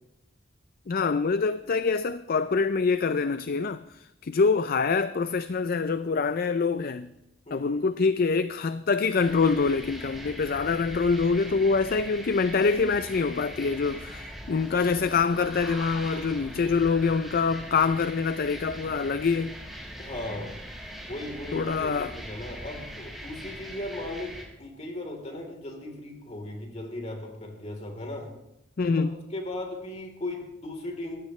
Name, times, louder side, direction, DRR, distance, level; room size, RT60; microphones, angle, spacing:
voice 1, 0.9-7.1 7.5-19.6 21.5-22.1 28.8-29.2, left 4 dB, 50° left, 0.5 m, -25 dB
voice 2, 7.4-7.9 20.0-20.5 21.0-28.3 28.9-31.2, left 1 dB, 35° left, 3.5 m, -37 dB
sound 1, 9.2-24.4, equal, ahead, 5.0 m, -41 dB
22.5 x 16.0 x 3.2 m
head